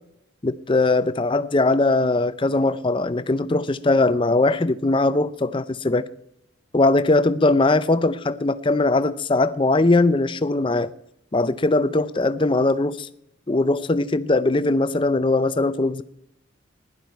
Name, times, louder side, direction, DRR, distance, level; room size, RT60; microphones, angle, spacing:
voice 1, 0.4-6.1 6.7-10.9 11.3-13.1 13.5-16.0, left 2 dB, 25° left, 0.5 m, -20 dB
16.0 x 11.0 x 4.6 m
head